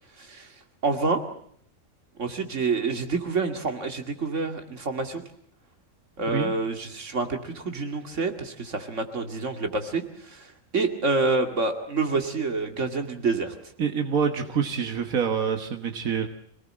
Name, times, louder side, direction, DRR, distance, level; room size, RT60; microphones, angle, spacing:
voice 1, 0.2-0.5 0.8-1.2 2.2-5.2 6.2-10.5 10.7-13.5, right 3 dB, 60° right, 5 dB, 2.7 m, -27 dB
voice 2, 13.8-16.3, right 6 dB, 90° right, 6 dB, 1.8 m, -26 dB
26.0 x 18.5 x 7.7 m, 0.65 s
omnidirectional pair, 1.4 m